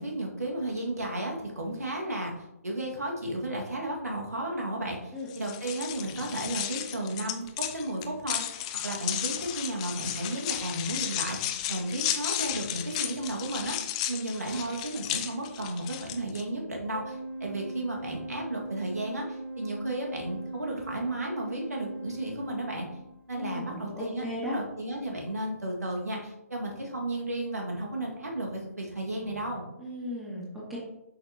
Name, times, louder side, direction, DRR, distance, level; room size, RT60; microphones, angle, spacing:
voice 1, 0.0-2.3 2.6-22.9 23.3-24.2 24.5-29.6, right 1 dB, 75° right, -1 dB, 1.9 m, -34 dB
sound 1, 5.3-16.4, left 12 dB, 25° left, 0.5 m, -34 dB
Organ, 16.9-23.5, right 2 dB, 40° right, 1.0 m, -40 dB
voice 2, 23.4-24.6 29.8-30.8, left 1 dB, ahead, -7 dB, 1.9 m, -36 dB
8.0 x 6.0 x 2.9 m, 0.89 s
figure-of-eight pair, 140°, 8 cm